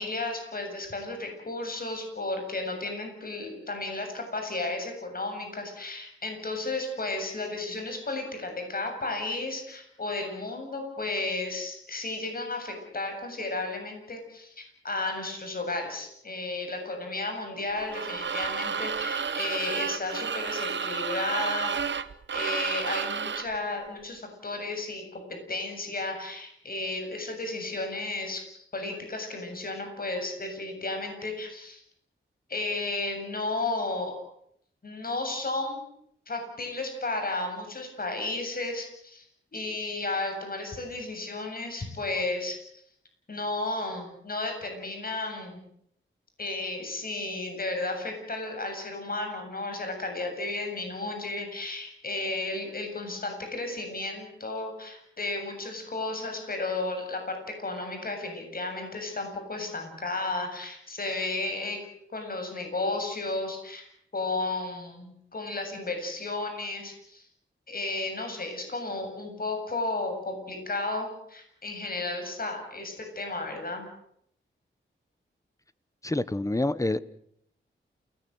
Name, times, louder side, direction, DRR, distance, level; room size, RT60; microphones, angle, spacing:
voice 1, 0.0-21.7 22.3-31.8 32.5-34.2 34.8-35.9 36.3-39.2 39.5-42.6 43.3-45.6 46.4-61.8 62.1-63.9 64.1-67.2 67.7-73.9, left 2 dB, 45° left, 4 dB, 7.6 m, -33 dB
sound 1, 17.8-23.6, right 6 dB, 65° right, 1.2 m, -31 dB
voice 2, 76.0-77.0, left 2 dB, 15° left, 16 dB, 1.1 m, -27 dB
29.0 x 19.0 x 8.0 m, 0.70 s
wide cardioid pair, 100°, 20 cm